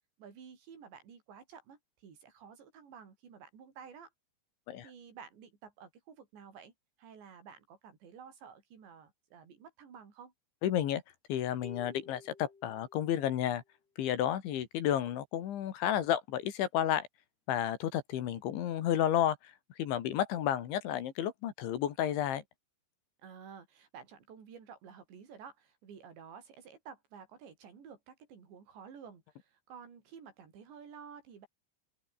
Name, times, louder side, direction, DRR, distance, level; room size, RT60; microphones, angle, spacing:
voice 1, 0.2-4.1 4.8-6.7 7.0-10.3 23.2-31.5, right 7 dB, 60° right, 6.9 m, -52 dB
voice 2, 10.6-11.0 11.3-13.6 14.0-17.1 17.5-19.4 19.8-22.4, left 11 dB, 70° left, 4.3 m, -31 dB
sound 1, 11.6-13.5, left 5 dB, 55° left, 8.7 m, -52 dB
omnidirectional pair, 5.7 m